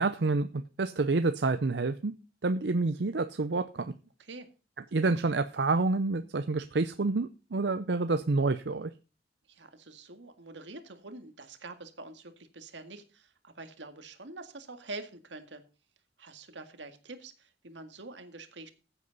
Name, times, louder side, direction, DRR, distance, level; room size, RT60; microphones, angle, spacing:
voice 1, 0.0-2.1 2.4-3.9 4.9-8.9, right 3 dB, 70° right, 10 dB, 0.6 m, -28 dB
voice 2, 9.5-15.6 16.2-18.7, right 2 dB, 85° right, 8 dB, 1.9 m, -46 dB
15.0 x 8.3 x 4.1 m, 0.33 s
head